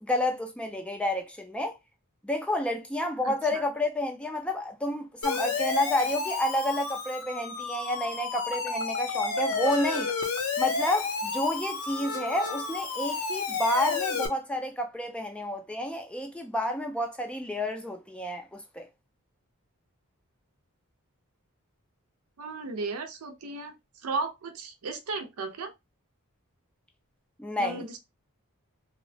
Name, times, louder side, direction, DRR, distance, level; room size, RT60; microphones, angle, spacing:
voice 1, 0.0-1.7 2.2-10.1 10.6-18.9 27.4-27.8, left 1 dB, 5° left, 0.3 m, -30 dB
voice 2, 3.2-3.6 22.4-23.7 24.0-25.7 27.6-28.0, right 3 dB, 75° right, 0.5 m, -35 dB
Siren, 5.2-14.3, left 4 dB, 65° left, 0.5 m, -31 dB
2.8 x 2.1 x 2.6 m
head